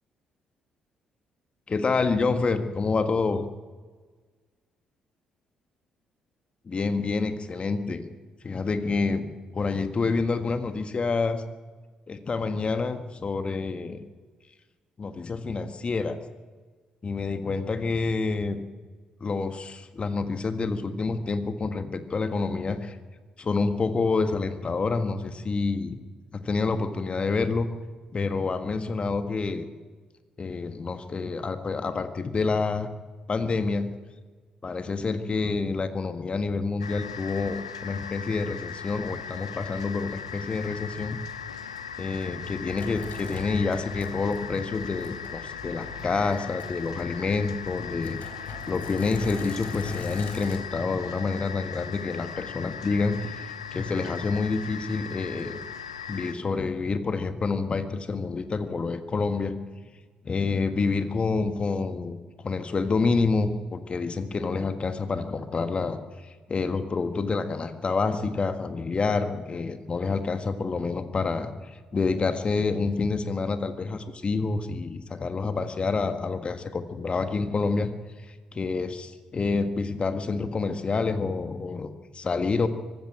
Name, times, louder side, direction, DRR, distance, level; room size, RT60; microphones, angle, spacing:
voice 1, 1.7-3.5 6.6-8.1 8.4-9.3 9.5-11.4 12.1-14.1 15.0-16.2 17.0-18.6 19.2-23.0 23.4-26.0 26.3-27.7 28.1-29.7 30.4-32.9 33.3-33.9 34.6-41.2 42.0-48.2 48.7-55.6 56.1-59.5 60.2-77.9 78.3-82.7, left 4 dB, 35° left, 9 dB, 1.6 m, -28 dB
sound 1, 36.8-56.3, left 7 dB, 80° left, 0.7 m, -39 dB
Sink (filling or washing), 41.7-50.6, left 4 dB, 50° left, 3.8 m, -41 dB
24.0 x 12.5 x 8.9 m, 1.4 s
figure-of-eight pair, 45°, 3 cm